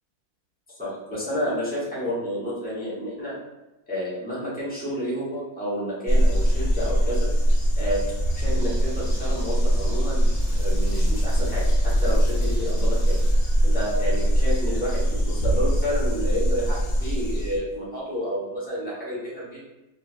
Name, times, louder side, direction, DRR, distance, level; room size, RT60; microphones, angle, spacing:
voice 1, 0.8-3.3 3.9-7.3 7.8-8.0 8.3-10.2 10.5-13.2 13.6-19.6, equal, 5° left, -8 dB, 0.8 m, -30 dB
sound 1, 6.1-17.6, equal, 90° left, 0.4 m, -22 dB
sound 2, 8.4-13.3, equal, 85° right, 1.4 m, -36 dB
3.3 x 2.4 x 2.5 m, 1.0 s
omnidirectional pair, 1.7 m